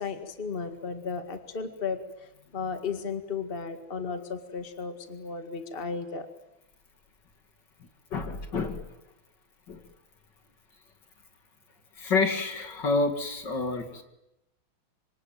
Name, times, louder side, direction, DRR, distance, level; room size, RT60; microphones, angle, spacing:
voice 1, 0.0-2.0 2.5-6.3, left 5 dB, 25° left, 7 dB, 2.1 m, -34 dB
voice 2, 8.1-8.8 9.7-9.8 12.0-14.0, left 3 dB, 55° left, 7 dB, 2.8 m, -28 dB
25.5 x 25.5 x 9.2 m, 0.88 s
omnidirectional pair, 2.3 m